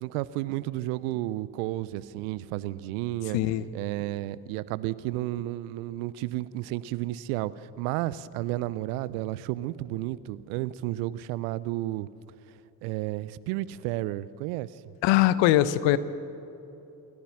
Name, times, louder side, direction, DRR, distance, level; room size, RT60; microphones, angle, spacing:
voice 1, 0.0-3.4 3.7-12.1 12.8-14.7, right 16 dB, 75° right, 19 dB, 0.7 m, -32 dB
voice 2, 3.3-3.6 15.0-16.0, left 14 dB, 70° left, 16 dB, 0.9 m, -21 dB
25.5 x 14.5 x 7.2 m, 2.9 s
hypercardioid pair, 50°, 45 cm